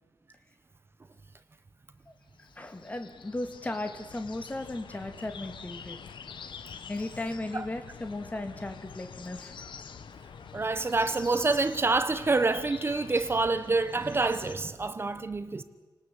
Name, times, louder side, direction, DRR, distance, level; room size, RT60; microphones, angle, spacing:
sound 1, 2.3-14.6, left 6 dB, 85° left, 1.4 m, -46 dB
voice 1, 2.6-6.0 6.9-9.5 10.5-10.9, left 2 dB, 20° left, 2.1 m, -36 dB
voice 2, 10.5-15.6, right 3 dB, 30° right, 1.1 m, -27 dB
28.5 x 19.0 x 8.5 m
wide cardioid pair, 150°, 8 cm